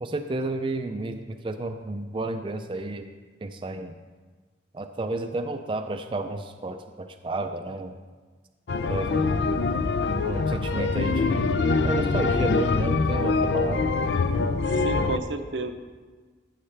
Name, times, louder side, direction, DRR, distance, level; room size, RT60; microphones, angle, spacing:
voice 1, 0.0-3.1 3.4-3.9 4.7-8.0 8.9-9.4 10.2-11.5 11.8-13.9, right 2 dB, 30° right, 6 dB, 0.4 m, -31 dB
sound 1, 8.7-15.2, left 4 dB, 75° left, 0.5 m, -24 dB
voice 2, 14.7-15.7, right 3 dB, 85° right, 7 dB, 0.7 m, -31 dB
13.5 x 6.6 x 3.4 m, 1.4 s
head